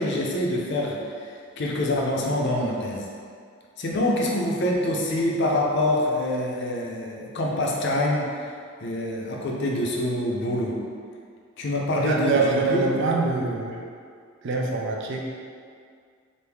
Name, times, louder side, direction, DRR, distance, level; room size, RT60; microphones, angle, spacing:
voice 1, 0.0-3.1 3.8-8.3 8.8-10.8 11.6-12.9, left 1 dB, 55° left, -2 dB, 0.5 m, -25 dB
voice 2, 12.0-13.8 14.4-15.2, right 3 dB, 60° right, 0 dB, 0.4 m, -24 dB
3.3 x 2.6 x 3.5 m, 2.2 s
head